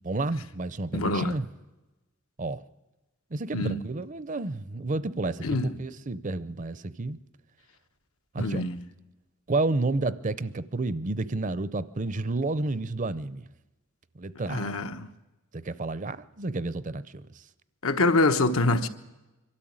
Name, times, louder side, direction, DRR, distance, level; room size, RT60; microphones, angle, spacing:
voice 1, 0.0-1.4 2.4-2.6 3.3-7.2 8.3-8.6 9.5-13.4 14.2-14.8 15.5-17.2, right 2 dB, 35° right, 0.6 m, -30 dB
voice 2, 0.9-1.4 3.5-3.8 5.4-5.7 8.4-8.8 14.5-15.1 17.8-18.9, left 2 dB, 85° left, 1.2 m, -25 dB
23.0 x 13.0 x 8.8 m
head